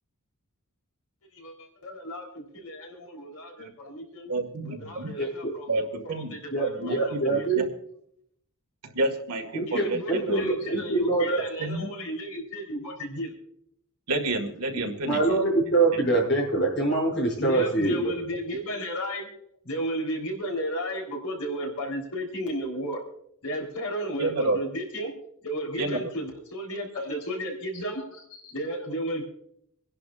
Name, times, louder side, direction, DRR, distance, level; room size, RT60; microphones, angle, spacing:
voice 1, 1.3-4.3 4.6-7.5 9.7-13.3 17.4-19.3 19.6-23.0 23.4-25.1 25.4-29.2, equal, 80° left, 1 dB, 3.9 m, -34 dB
voice 2, 4.3-5.1 5.7-6.4 6.7-7.7 8.9-10.0 10.2-10.5 11.6-11.9 14.1-15.4 16.0-16.1 24.2-24.6 25.8-26.0, right 2 dB, 85° right, 3 dB, 2.0 m, -29 dB
voice 3, 5.2-5.5 6.5-7.6 9.5-11.4 15.0-18.2, right 2 dB, 50° left, -2 dB, 7.2 m, -24 dB
27.5 x 11.0 x 2.5 m, 0.70 s
head